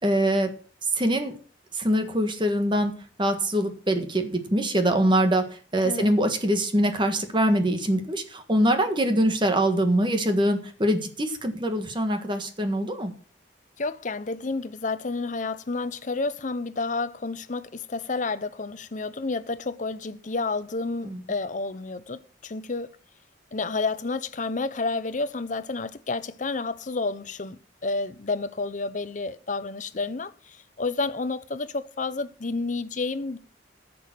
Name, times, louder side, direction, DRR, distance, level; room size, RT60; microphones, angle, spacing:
voice 1, 0.0-0.5 0.9-1.3 1.7-13.1 21.0-21.2, right 1 dB, 25° right, 1.6 m, -24 dB
voice 2, 13.8-22.9 23.5-33.4, left 3 dB, 45° left, 0.8 m, -30 dB
11.0 x 7.0 x 7.6 m
head